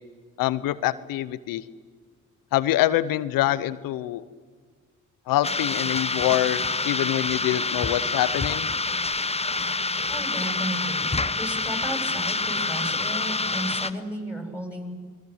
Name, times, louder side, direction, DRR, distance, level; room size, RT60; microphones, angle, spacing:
voice 1, 0.4-1.6 2.5-4.2 5.3-8.7, left 14 dB, 80° left, 17 dB, 0.9 m, -25 dB
sound 1, 5.4-13.9, left 3 dB, 20° left, 1.1 m, -27 dB
voice 2, 10.1-14.9, equal, 5° right, 3 dB, 7.9 m, -34 dB
27.0 x 21.0 x 8.1 m, 1.5 s
hypercardioid pair, 40°, 33 cm